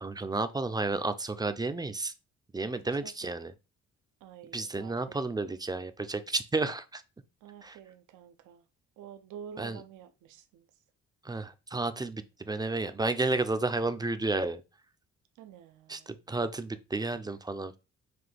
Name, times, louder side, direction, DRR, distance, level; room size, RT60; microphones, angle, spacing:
voice 1, 0.0-2.1 2.5-3.5 4.5-7.0 7.6-7.8 9.6-9.8 11.2-14.6 15.9-17.8, right 3 dB, 15° right, 0.4 m, -32 dB
voice 2, 2.7-3.3 4.2-5.2 7.4-8.6 9.0-10.7 15.4-16.1, right 8 dB, 85° right, 0.6 m, -49 dB
5.9 x 2.3 x 3.4 m
cardioid pair, 90°, 30 cm